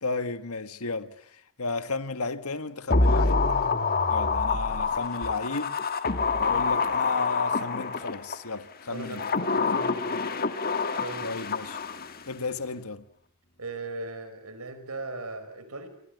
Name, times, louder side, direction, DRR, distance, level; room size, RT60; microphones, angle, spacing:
voice 1, 0.0-3.5 4.1-5.8 6.4-9.2 11.2-11.8 12.3-13.1, left 3 dB, 80° left, 1.7 m, -33 dB
sound 1, 2.9-8.4 9.0-12.2 12.5-12.6, left 4 dB, 40° left, 1.7 m, -26 dB
voice 2, 8.9-9.3 9.5-10.3 11.0-11.3 13.6-15.9, right 2 dB, 85° right, 5.5 m, -38 dB
28.5 x 24.5 x 8.2 m
head